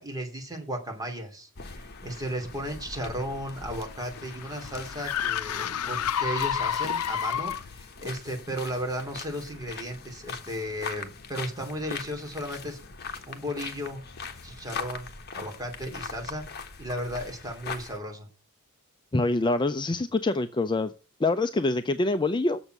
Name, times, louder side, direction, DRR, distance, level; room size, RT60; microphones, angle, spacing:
voice 1, 0.0-12.8 13.3-14.0 14.4-15.1 15.3-16.4 16.8-18.3, equal, 20° right, 2 dB, 2.9 m, -35 dB
sound 1, 1.6-18.0, left 5 dB, 45° left, 1.3 m, -41 dB
sound 2, 3.3-7.8, left 9 dB, 80° left, 0.5 m, -30 dB
voice 2, 19.1-20.9 21.2-22.6, left 2 dB, 20° left, 9 dB, 0.5 m, -25 dB
7.1 x 7.1 x 7.6 m, 0.35 s
head